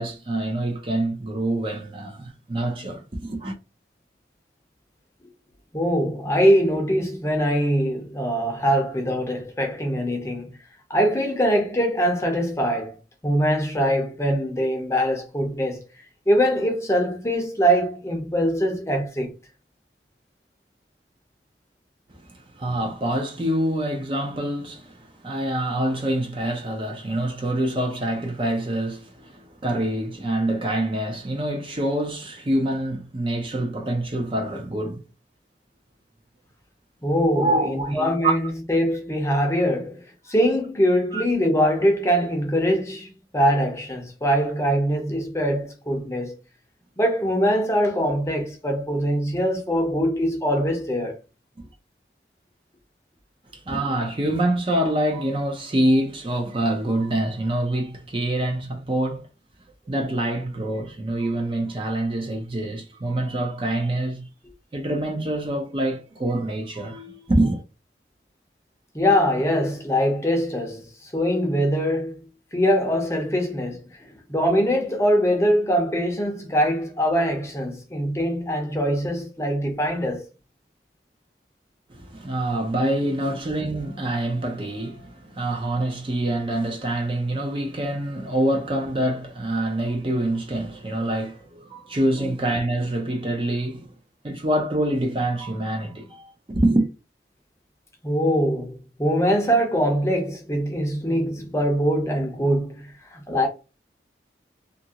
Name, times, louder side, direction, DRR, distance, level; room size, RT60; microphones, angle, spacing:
voice 1, 0.0-3.5 22.1-35.0 37.3-38.3 41.1-41.2 51.6-51.7 53.5-59.3 59.9-64.3 64.7-67.6 81.9-93.9 94.2-96.9, right 1 dB, 30° right, 0.5 m, -26 dB
voice 2, 5.7-10.5 10.9-13.0 13.2-15.8 16.3-19.3 37.0-46.3 47.0-51.2 68.9-73.8 74.3-80.3 92.2-92.3 98.0-103.5, equal, 15° left, 0.6 m, -23 dB
2.8 x 2.5 x 2.8 m
head